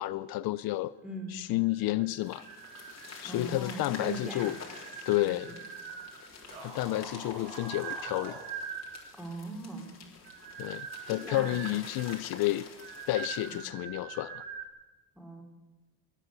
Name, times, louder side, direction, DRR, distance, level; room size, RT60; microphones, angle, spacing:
voice 1, 0.0-0.9 1.3-2.5 3.2-4.6 5.1-5.5 6.6-8.4 10.6-12.6 13.1-14.4, left 16 dB, 65° left, 16 dB, 0.5 m, -31 dB
voice 2, 1.0-1.3 3.2-4.5 5.1-5.2 5.5-5.6 9.1-9.9 11.2-11.6 13.4-13.6 15.1-15.4, right 1 dB, ahead, 2 dB, 4.5 m, -40 dB
sound 1, 1.7-3.5 3.9-6.4 7.1-9.2 10.1-14.7, right 7 dB, 80° right, 1.9 m, -43 dB
sound 2, 2.2-13.7, left 4 dB, 40° left, 4.0 m, -48 dB
sound 3, 6.4-8.5, right 2 dB, 55° right, 5.9 m, -45 dB
21.0 x 9.2 x 6.8 m, 1.2 s
cardioid pair, 90°, 40 cm